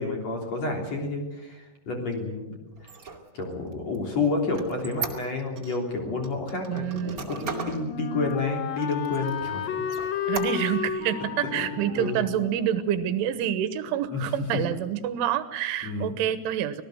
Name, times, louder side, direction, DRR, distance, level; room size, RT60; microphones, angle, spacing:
voice 1, 0.0-2.6 3.3-9.6 11.6-11.7 12.0-12.2 14.1-14.2 15.8-16.1, left 3 dB, 35° left, 2 dB, 3.9 m, -30 dB
Squeak, 2.8-5.8 6.2-7.8 8.3-8.4 8.8-9.5 9.9-10.9, right 6 dB, 40° right, 1.3 m, -37 dB
voice 2, 6.7-7.6 10.3-16.8, right 10 dB, 80° right, 12 dB, 3.5 m, -28 dB
Wind instrument woodwind instrument, 7.0-13.8, left 8 dB, 65° left, 2.3 m, -33 dB
25.5 x 18.0 x 7.9 m, 1.0 s
omnidirectional pair, 5.7 m